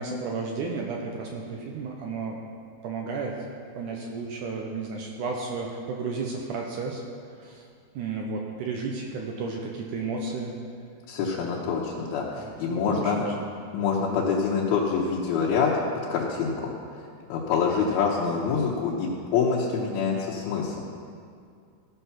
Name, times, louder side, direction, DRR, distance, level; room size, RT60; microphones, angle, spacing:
voice 1, 0.0-2.4 2.8-3.4 3.8-7.0 7.4-7.6 8.0-10.5 11.3-11.6 12.4-13.3, right 4 dB, 75° right, 0 dB, 2.0 m, -33 dB
voice 2, 11.1-13.2 13.7-15.7 16.1-17.0 17.3-20.8, left 5 dB, 85° left, -4 dB, 2.9 m, -26 dB
15.5 x 5.7 x 5.9 m, 2.3 s
omnidirectional pair, 4.3 m